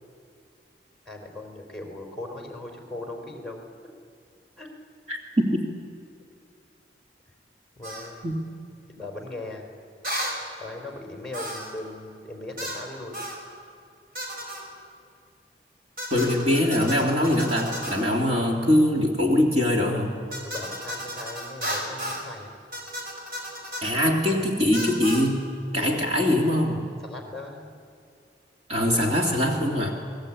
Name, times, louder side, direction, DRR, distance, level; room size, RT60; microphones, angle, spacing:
voice 1, 1.1-3.7 4.6-4.7 7.8-8.3 8.9-9.7 10.6-13.2 20.4-22.5 25.7-26.2 27.0-27.8, left 2 dB, ahead, 1 dB, 3.8 m, -39 dB
voice 2, 5.1-5.6 8.2-8.4 16.1-20.2 23.8-25.5 25.7-26.9 28.7-29.9, left 1 dB, 35° right, -1 dB, 2.8 m, -22 dB
sound 1, 7.8-8.1 10.0-10.4 11.3-11.8 12.6-12.8 13.1-13.4 14.1-14.7 16.0-18.1 20.3-22.3 22.7-24.0 24.7-25.3, equal, 50° right, 5.5 m, -34 dB
29.5 x 20.5 x 8.6 m, 2.4 s
head